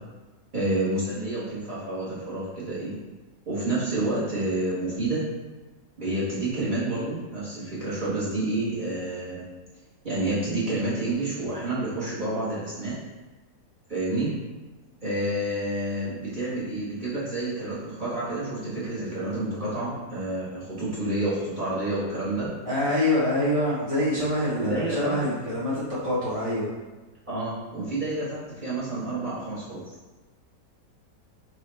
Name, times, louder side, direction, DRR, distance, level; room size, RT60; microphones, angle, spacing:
voice 1, 0.5-3.0 3.5-5.2 6.0-9.4 10.0-12.9 13.9-14.3 15.0-22.5 24.6-25.1 27.3-29.8, right 2 dB, 35° right, -9 dB, 1.0 m, -29 dB
voice 2, 22.7-26.7, left 1 dB, 35° left, -9 dB, 0.5 m, -25 dB
5.8 x 2.3 x 3.2 m, 1.2 s
omnidirectional pair, 1.8 m